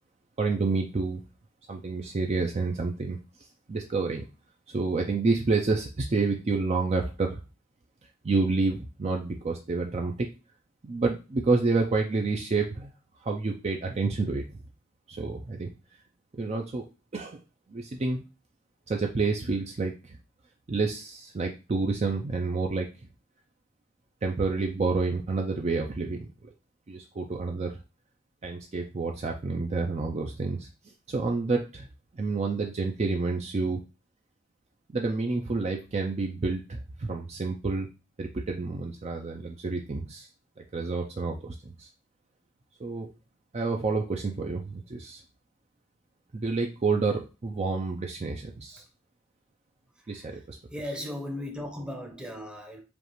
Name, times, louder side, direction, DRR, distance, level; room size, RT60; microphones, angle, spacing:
voice 1, 0.4-1.2 1.7-3.2 3.7-4.3 4.7-7.4 8.2-10.3 10.8-12.9 13.2-14.4 15.1-15.7 16.4-16.8 17.1-17.4 17.7-18.2 18.9-20.2 20.7-22.9 24.2-26.3 26.9-27.8 28.4-30.7 31.1-31.9 32.2-33.8 34.9-37.9 38.2-40.3 40.7-41.9 42.8-43.1 43.5-45.2 46.3-48.8 50.1-50.6, right 3 dB, 35° right, 0.4 m, -29 dB
voice 2, 50.0-50.4 50.7-52.8, left 1 dB, 5° right, 0.7 m, -37 dB
5.1 x 2.4 x 3.0 m
head